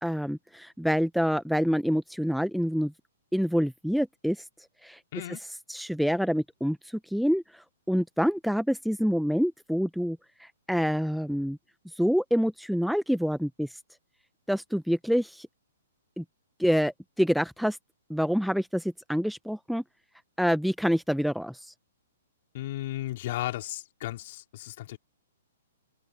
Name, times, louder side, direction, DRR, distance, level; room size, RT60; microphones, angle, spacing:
voice 1, 0.0-2.9 3.3-4.4 4.8-5.0 5.7-11.6 11.9-13.7 14.5-15.5 16.2-16.3 16.6-17.8 18.1-19.8 20.4-21.7, equal, ahead, 0.7 m, -27 dB
voice 2, 22.5-25.0, left 15 dB, 50° left, 3.7 m, -35 dB
hypercardioid pair, 140°, 0 cm